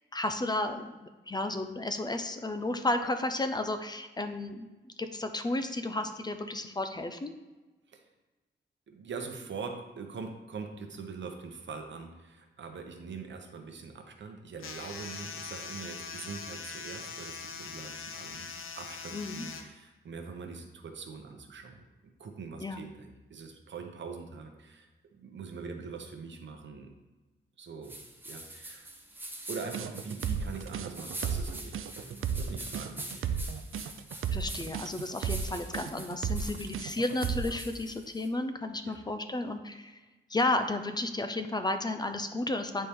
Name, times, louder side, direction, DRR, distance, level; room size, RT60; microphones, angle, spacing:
voice 1, 0.1-4.7 5.0-7.3 19.1-19.4 22.6-22.8 34.3-40.0 40.3-42.9, left 2 dB, 20° left, 7 dB, 0.4 m, -33 dB
voice 2, 8.9-21.8 22.2-24.9 25.1-26.9 27.6-28.0 28.2-28.9 29.5-33.6 38.9-39.0, right 5 dB, 65° right, 4 dB, 0.9 m, -43 dB
sound 1, 14.6-19.6, left 5 dB, 90° left, 0.7 m, -42 dB
sound 2, 27.8-38.3, right 1 dB, 10° right, 0.8 m, -45 dB
sound 3, 29.7-37.6, right 7 dB, 85° right, 0.4 m, -33 dB
8.2 x 4.3 x 3.5 m, 1.2 s
wide cardioid pair, 160°, 21 cm